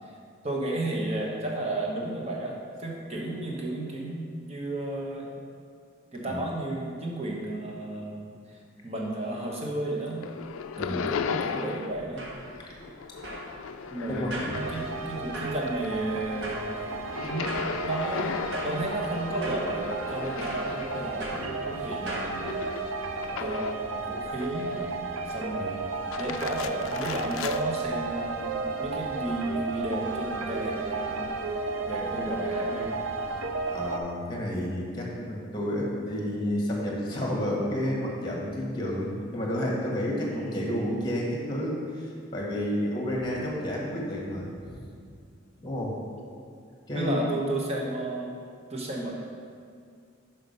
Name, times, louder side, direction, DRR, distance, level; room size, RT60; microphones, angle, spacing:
voice 1, 0.4-5.3 6.1-10.3 10.8-12.3 13.9-22.5 23.4-25.0 25.3-25.8 26.2-33.1 40.3-40.7 46.9-48.3 48.7-49.1, right 1 dB, 30° right, -2 dB, 1.0 m, -33 dB
sound 1, 9.0-9.8 10.0-12.1 12.3-15.2 15.6-23.9 24.4-25.1 25.9-27.6, left 6 dB, 85° left, 0.4 m, -37 dB
voice 2, 10.8-11.1 12.5-12.9 14.1-14.6 25.5-25.7 33.7-44.8 45.6-46.0 46.9-47.2, equal, 20° left, -2 dB, 1.4 m, -31 dB
sound 2, 11.9-22.3, right 1 dB, 60° right, 1.5 m, -41 dB
sound 3, 14.5-34.0, right 3 dB, 85° right, 0.5 m, -33 dB
5.9 x 5.6 x 5.3 m, 2.3 s
head